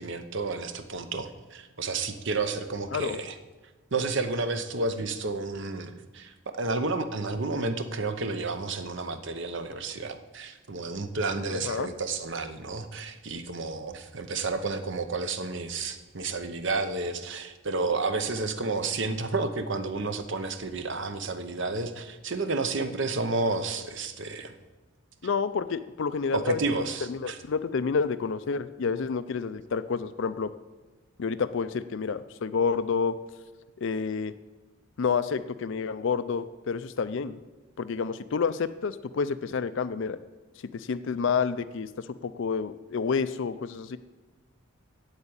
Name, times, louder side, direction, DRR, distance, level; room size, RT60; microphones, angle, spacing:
voice 1, 0.0-3.4 3.9-24.5 26.3-27.4, right 3 dB, 55° right, 9 dB, 0.9 m, -31 dB
voice 2, 11.5-11.9 25.2-26.8 27.1-30.5 31.2-33.2 33.8-34.3 35.0-37.4 37.8-40.2 40.7-44.0, left 5 dB, 60° left, 13 dB, 0.4 m, -29 dB
8.1 x 8.0 x 8.8 m, 1.2 s
head